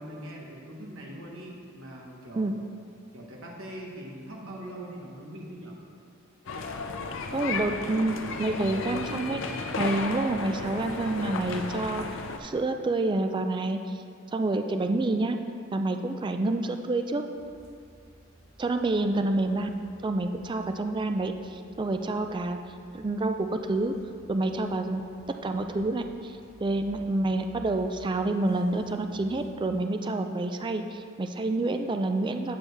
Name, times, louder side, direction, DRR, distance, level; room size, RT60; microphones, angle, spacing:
voice 1, 0.0-2.6 3.1-5.8, right 1 dB, 75° right, -2 dB, 1.2 m, -42 dB
sound 1, 6.5-12.4, left 4 dB, 65° left, 0.5 m, -34 dB
voice 2, 7.3-9.4 9.8-12.0 12.4-13.8 14.3-15.4 15.7-17.2 18.6-19.7 20.0-22.6 22.9-23.9 24.3-25.0 25.4-32.6, right 2 dB, 25° right, 6 dB, 0.3 m, -28 dB
sound 2, 17.3-29.5, equal, 55° right, 1.4 m, -55 dB
8.5 x 6.3 x 3.4 m, 2.4 s
head